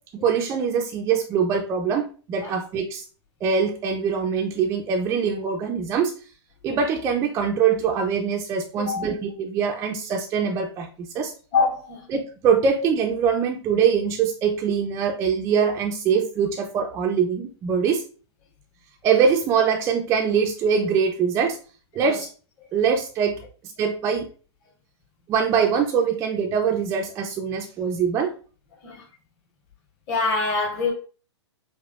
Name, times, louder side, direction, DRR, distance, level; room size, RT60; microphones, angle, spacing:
voice 1, 0.1-3.0 3.4-6.1 6.6-11.3 12.1-18.0 19.0-21.6 21.9-22.3 22.7-23.4 23.8-24.3 25.3-28.3, right 6 dB, 20° right, 0.3 m, -23 dB
voice 2, 11.5-12.1 22.0-22.2 28.8-29.0 30.1-30.9, left 4 dB, 40° left, 1.7 m, -24 dB
4.8 x 2.0 x 2.2 m
hypercardioid pair, 125°, 15 cm